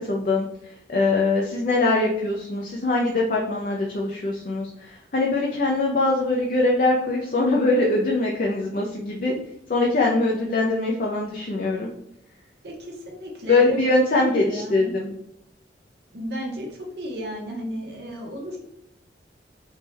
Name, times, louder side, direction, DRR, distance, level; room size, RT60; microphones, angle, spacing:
voice 1, 0.0-9.3 9.7-11.9 13.5-15.1, left 2 dB, 50° left, -2 dB, 0.5 m, -22 dB
voice 2, 12.6-13.9 14.1-14.9 16.1-18.6, equal, 60° right, -1 dB, 1.0 m, -33 dB
3.4 x 3.2 x 3.2 m, 0.81 s
head